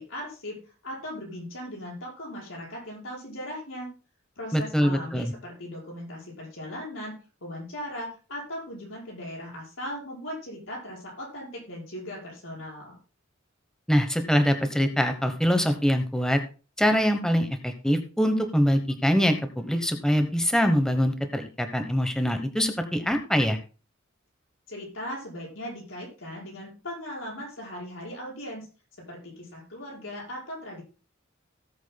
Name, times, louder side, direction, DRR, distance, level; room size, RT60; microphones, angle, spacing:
voice 1, 0.0-3.9 4.4-13.0 24.7-28.7 29.0-30.8, equal, 80° left, -4 dB, 5.4 m, -38 dB
voice 2, 4.5-5.3 13.9-16.4 16.8-23.6, equal, 5° left, 7 dB, 0.9 m, -24 dB
18.0 x 8.1 x 2.2 m, 0.34 s
head